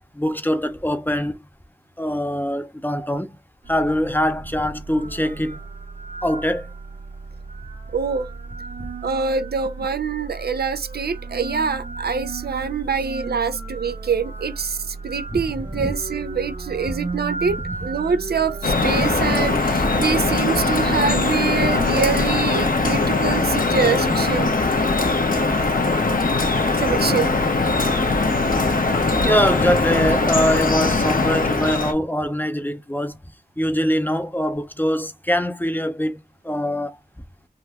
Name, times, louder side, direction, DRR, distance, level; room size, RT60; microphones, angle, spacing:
voice 1, 0.2-1.4 2.0-3.3 3.7-5.6 6.2-6.7 15.3-15.4 15.7-15.9 18.9-19.1 29.2-33.1 33.6-36.2 36.4-36.9, equal, 10° left, 0.6 m, -23 dB
sound 1, 3.6-22.4, right 4 dB, 55° right, 1.1 m, -33 dB
voice 2, 7.9-8.3 9.0-24.5 25.4-25.7 25.9-26.0 26.8-27.3, right 5 dB, 75° right, 0.4 m, -25 dB
Drip, 18.6-31.9, left 3 dB, 60° left, 0.9 m, -20 dB
3.7 x 2.3 x 2.8 m
wide cardioid pair, 45°, 16 cm